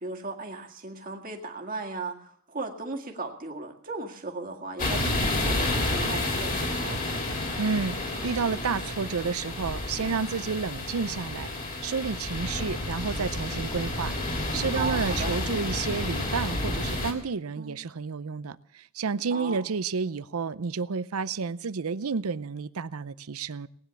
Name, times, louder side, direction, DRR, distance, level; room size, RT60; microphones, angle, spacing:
voice 1, 0.0-7.3 14.7-15.4 17.6-17.8 19.3-19.7, right 3 dB, 40° right, 1.9 m, -37 dB
sound 1, 4.8-17.1, left 1 dB, 40° left, 3.1 m, -30 dB
voice 2, 7.6-11.5 11.8-14.1 14.5-23.7, right 5 dB, 75° right, 0.6 m, -30 dB
19.0 x 9.8 x 7.0 m
head